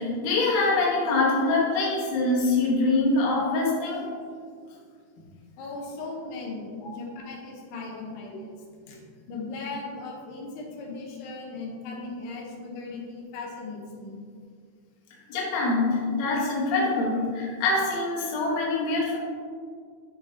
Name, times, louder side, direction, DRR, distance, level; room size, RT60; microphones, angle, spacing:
voice 1, 0.0-4.1 15.3-19.2, left 3 dB, 60° left, -4 dB, 2.0 m, -24 dB
voice 2, 5.6-9.0 9.3-14.2, left 3 dB, 85° left, -2 dB, 3.1 m, -38 dB
12.0 x 4.2 x 2.8 m, 2.1 s
omnidirectional pair, 4.7 m